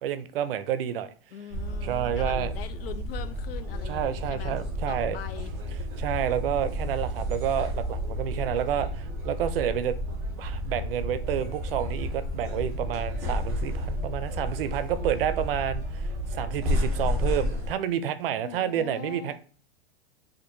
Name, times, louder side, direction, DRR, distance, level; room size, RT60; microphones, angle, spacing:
voice 1, 0.0-1.1 1.8-2.5 3.9-5.2 6.0-9.9 10.3-16.0 16.3-19.4, right 10 dB, 70° right, 12 dB, 0.5 m, -29 dB
voice 2, 1.3-5.5 18.4-19.4, left 9 dB, 70° left, 11 dB, 0.5 m, -42 dB
sound 1, 1.5-17.7, left 1 dB, 10° right, 0.6 m, -31 dB
4.3 x 2.6 x 2.6 m, 0.41 s
supercardioid pair, 175°, 30 cm